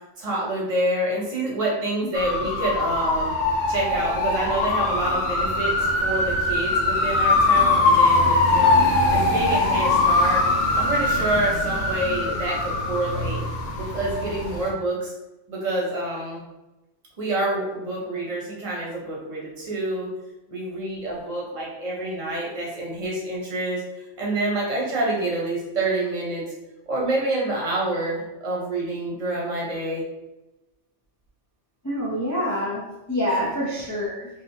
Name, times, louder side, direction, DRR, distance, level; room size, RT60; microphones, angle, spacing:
voice 1, 0.2-3.3 3.7-13.4 13.8-15.1 15.5-16.4 17.2-20.1 20.5-23.8 24.2-26.5 26.9-30.0 33.4-33.5, right 2 dB, 30° right, -4 dB, 0.9 m, -27 dB
sound 1, 2.1-14.7, left 2 dB, 80° left, 1.0 m, -22 dB
voice 2, 31.8-34.3, equal, 25° left, -6 dB, 0.4 m, -26 dB
3.3 x 2.7 x 2.7 m, 0.98 s
omnidirectional pair, 1.3 m